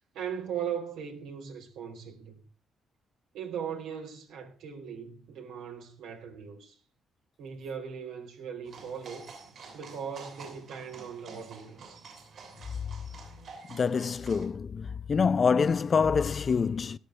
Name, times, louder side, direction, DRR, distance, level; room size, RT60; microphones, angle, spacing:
voice 1, 0.1-2.4 3.3-6.7 7.4-9.3 9.7-12.0, right 7 dB, 85° right, 4.1 m, -39 dB
sound 1, 8.7-14.5, right 5 dB, 65° right, 6.7 m, -49 dB
voice 2, 13.7-17.0, left 5 dB, 40° left, 0.6 m, -26 dB
18.0 x 12.5 x 3.3 m
cardioid pair, 90°, 0 cm